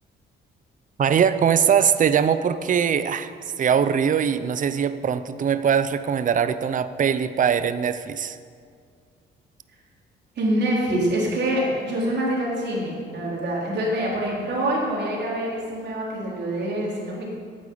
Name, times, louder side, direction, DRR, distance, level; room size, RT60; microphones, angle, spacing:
voice 1, 1.0-3.3 3.6-8.4, right 7 dB, 40° right, 12 dB, 0.6 m, -21 dB
voice 2, 10.4-17.3, right 1 dB, 60° right, -4 dB, 3.9 m, -25 dB
9.5 x 8.3 x 8.5 m, 2.1 s
cardioid pair, 90°, 20 cm